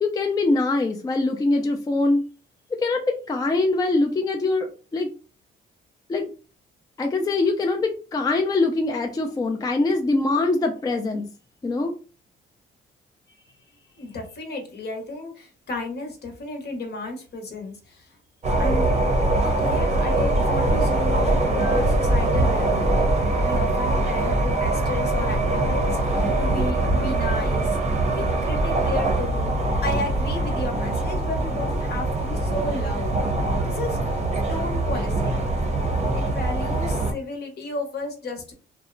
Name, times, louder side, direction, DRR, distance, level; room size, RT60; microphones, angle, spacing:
voice 1, 0.0-2.2 2.8-5.1 6.1-6.3 7.0-11.3 11.6-11.9, left 3 dB, 20° left, 3 dB, 0.4 m, -23 dB
voice 2, 14.0-18.1 18.6-19.0 19.4-23.0 23.4-27.8 28.0-29.5 29.8-33.1 33.6-34.0 34.5-35.4 36.1-38.5, left 2 dB, 55° left, 3 dB, 0.9 m, -33 dB
sound 1, 18.4-37.1, right 2 dB, 35° right, 0.6 m, -23 dB
2.6 x 2.0 x 2.5 m, 0.36 s
cardioid pair, 90°, 20 cm